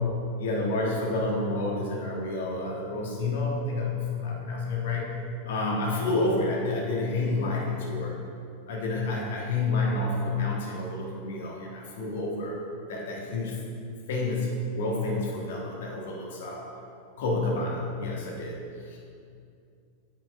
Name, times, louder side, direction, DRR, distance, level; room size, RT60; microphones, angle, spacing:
voice 1, 0.4-8.2 8.7-12.5 12.9-13.6 14.1-16.7 17.2-18.6 18.9-19.0, left 2 dB, 60° left, -2 dB, 1.6 m, -29 dB
9.1 x 7.6 x 3.3 m, 2.4 s
figure-of-eight pair, 90°, 0 cm